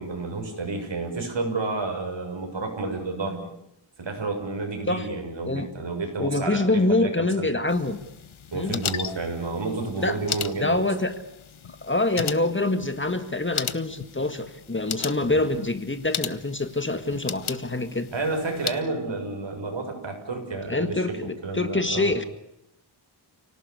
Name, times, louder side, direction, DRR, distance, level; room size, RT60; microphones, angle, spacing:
voice 1, 0.0-3.5 4.0-7.6 8.5-10.8 15.3-15.4 18.1-22.1, right 3 dB, 65° right, 4 dB, 7.2 m, -30 dB
voice 2, 6.2-8.0 8.5-8.8 10.0-10.2 10.6-11.1 11.8-18.1 20.7-22.3, left 2 dB, 25° left, 9 dB, 1.8 m, -25 dB
sound 1, 7.7-18.8, left 8 dB, 80° left, 1.3 m, -36 dB
30.0 x 18.5 x 8.3 m, 0.84 s
wide cardioid pair, 120°, 48 cm